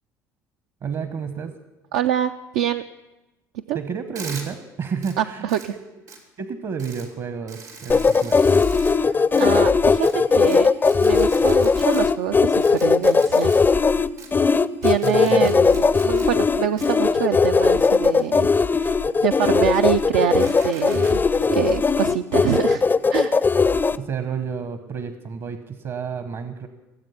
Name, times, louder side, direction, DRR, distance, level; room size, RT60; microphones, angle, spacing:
voice 1, 0.8-1.5 3.7-5.8 6.4-8.4 15.0-15.5 24.0-26.7, right 6 dB, 50° right, 9 dB, 1.0 m, -30 dB
voice 2, 1.9-2.8 3.7-3.8 5.2-5.7 9.0-10.7 11.0-13.6 14.8-18.5 18.7-19.0 19.2-22.8 23.1-23.4, right 10 dB, 70° right, 8 dB, 0.4 m, -25 dB
sound 1, 4.2-4.4 5.0-5.1 5.5-5.7 6.1-6.2 6.8-7.1 7.5-8.9 9.3-9.4 10.0-10.1 10.5-10.6 10.8-12.0 12.6-13.6 14.2-14.3 14.8-16.3 16.8-16.9 17.6-18.9 19.4-20.0 20.4-21.2, right 5 dB, 85° right, 2.3 m, -41 dB
sound 2, 7.9-24.0, left 4 dB, 20° left, 0.4 m, -18 dB
17.5 x 7.7 x 5.7 m, 1.0 s
hypercardioid pair, 60°, 9 cm